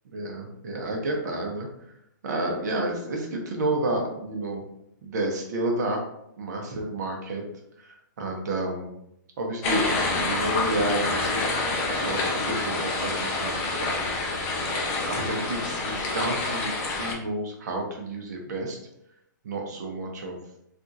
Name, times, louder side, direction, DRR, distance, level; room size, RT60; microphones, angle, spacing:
voice 1, 0.0-1.7 2.2-4.6 5.0-6.0 6.4-7.4 7.8-8.9 9.4-9.9 10.1-11.4 11.9-14.0 15.1-18.8 19.4-20.4, right 1 dB, 55° right, 1 dB, 0.9 m, -30 dB
sound 1, 9.6-17.1, left 2 dB, 25° left, 0.5 m, -27 dB
3.5 x 2.4 x 2.7 m, 0.78 s
hypercardioid pair, 160°, 11 cm